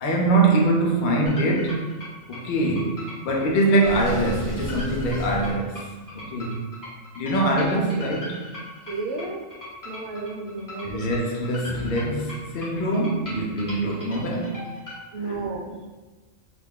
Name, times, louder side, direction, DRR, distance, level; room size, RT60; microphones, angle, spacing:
voice 1, 0.0-1.9 2.3-5.8 6.1-6.6 7.1-8.4 10.8-14.6 15.2-15.4, right 2 dB, 70° left, -1 dB, 0.4 m, -23 dB
sound 1, 1.3-15.0, left 1 dB, 20° left, 0.6 m, -39 dB
Water / Sink (filling or washing), 3.8-5.6, equal, 15° right, 0.8 m, -33 dB
voice 2, 8.9-9.4 9.8-11.2 15.1-15.9, right 3 dB, 80° right, 0 dB, 1.0 m, -32 dB
2.4 x 2.3 x 3.5 m, 1.2 s
omnidirectional pair, 1.4 m